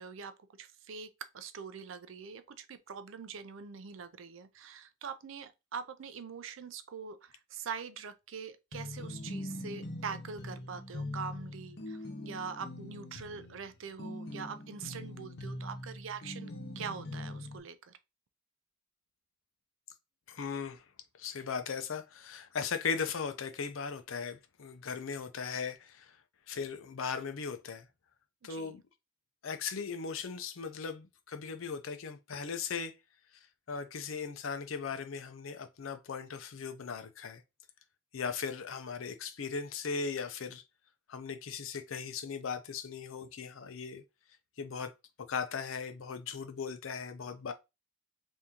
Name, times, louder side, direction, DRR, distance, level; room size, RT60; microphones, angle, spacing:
voice 1, 0.0-18.0 28.4-28.7, right 6 dB, 70° right, 0.4 m, -43 dB
sound 1, 8.7-17.6, left 1 dB, 55° left, 0.9 m, -42 dB
voice 2, 20.3-20.8 21.2-26.2 26.5-27.9 28.4-28.8 29.4-32.9 33.7-37.4 38.1-40.6 41.1-44.0 44.6-44.9 45.3-47.5, left 5 dB, 80° left, 0.5 m, -38 dB
3.6 x 2.7 x 2.8 m
head